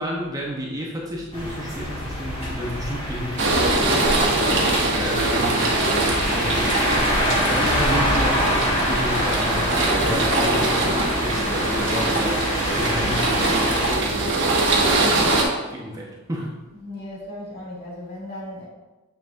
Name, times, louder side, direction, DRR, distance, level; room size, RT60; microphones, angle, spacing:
voice 1, 0.0-3.7 4.2-5.8 6.3-6.7 7.0-12.5 12.7-14.7 15.7-16.6, equal, 15° right, -3 dB, 0.9 m, -31 dB
sound 1, 1.3-13.9, equal, 25° left, 1.5 m, -25 dB
sound 2, 3.4-15.4, right 2 dB, 55° right, 1.1 m, -22 dB
voice 2, 16.8-18.7, left 1 dB, 45° left, -5 dB, 2.1 m, -36 dB
7.3 x 5.9 x 2.6 m, 1.1 s
head